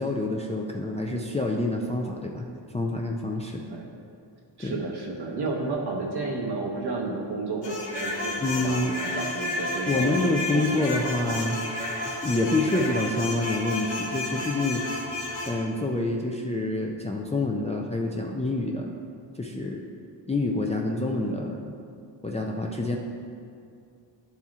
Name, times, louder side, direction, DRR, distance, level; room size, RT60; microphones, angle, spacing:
voice 1, 0.0-2.5 2.7-3.6 4.6-4.8 8.4-9.0 9.9-11.6 12.2-14.8 15.5-18.9 19.4-19.8 20.3-21.7 22.2-23.0, left 2 dB, 15° left, 0 dB, 0.3 m, -27 dB
voice 2, 4.6-8.4 8.6-8.8 9.1-10.2 10.5-11.1, right 3 dB, 60° right, -1 dB, 1.1 m, -32 dB
sound 1, 7.6-15.6, left 1 dB, 70° left, 1.3 m, -31 dB
11.0 x 4.4 x 3.5 m, 2.4 s
wide cardioid pair, 150°, 44 cm